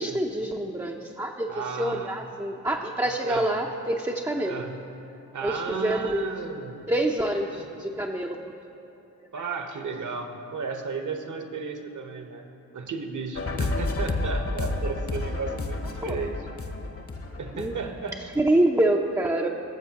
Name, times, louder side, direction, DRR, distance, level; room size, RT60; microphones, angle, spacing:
voice 1, 0.0-4.6 5.4-6.3 6.9-8.5 16.0-16.2 17.5-17.7 18.4-19.5, right 1 dB, 10° right, 0 dB, 0.7 m, -26 dB
voice 2, 1.5-2.2 3.2-3.5 4.5-4.8 5.3-6.8 7.5-7.9 9.3-12.5 12.7-16.3 17.4-18.2, right 4 dB, 45° right, 5 dB, 1.2 m, -34 dB
sound 1, 13.4-18.4, left 2 dB, 35° left, 1.1 m, -30 dB
18.5 x 7.3 x 2.9 m, 2.8 s
hypercardioid pair, 45°, 41 cm